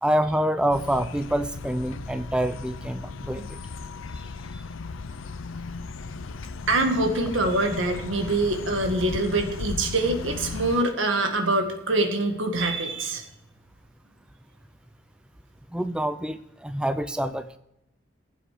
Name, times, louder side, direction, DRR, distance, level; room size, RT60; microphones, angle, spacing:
voice 1, 0.0-3.6 4.1-4.3 4.5-4.6 15.7-17.5, right 1 dB, 5° right, 11 dB, 0.4 m, -26 dB
sound 1, 0.7-10.8, left 4 dB, 90° left, 0.6 m, -36 dB
voice 2, 6.7-13.2, right 2 dB, 80° right, 4 dB, 1.9 m, -24 dB
15.0 x 7.7 x 5.0 m, 0.84 s
head